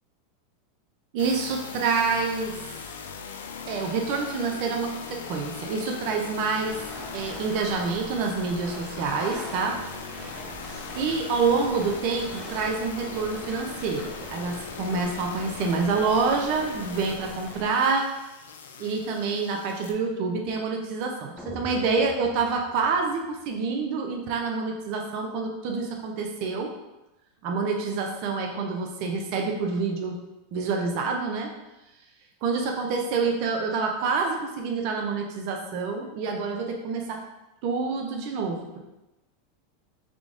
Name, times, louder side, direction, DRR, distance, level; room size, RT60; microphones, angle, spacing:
voice 1, 1.1-2.5 3.7-6.8 7.1-9.8 10.1-10.4 10.9-18.1 18.8-26.7 27.4-30.2 30.5-31.5 32.4-37.2 37.6-38.8, right 4 dB, 55° right, 2 dB, 0.6 m, -27 dB
sound 1, 1.2-19.9, left 6 dB, 85° left, 0.3 m, -40 dB
sound 2, 6.6-17.7, right 1 dB, 25° right, 0.7 m, -42 dB
sound 3, 21.4-23.7, left 2 dB, 5° left, 0.6 m, -43 dB
3.6 x 2.4 x 3.7 m, 0.98 s
hypercardioid pair, 115°, 0 cm